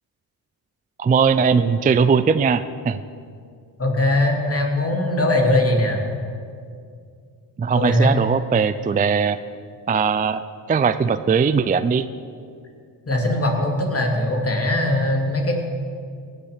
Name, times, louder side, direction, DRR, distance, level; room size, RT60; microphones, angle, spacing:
voice 1, 1.0-3.0 7.6-9.4 9.9-10.4 10.7-12.1, right 5 dB, 20° right, 12 dB, 0.4 m, -19 dB
voice 2, 3.8-6.0 7.7-8.1 13.1-15.5, left 1 dB, 30° left, 1 dB, 2.7 m, -20 dB
17.0 x 7.2 x 6.7 m, 2.3 s
cardioid pair, 70°, 47 cm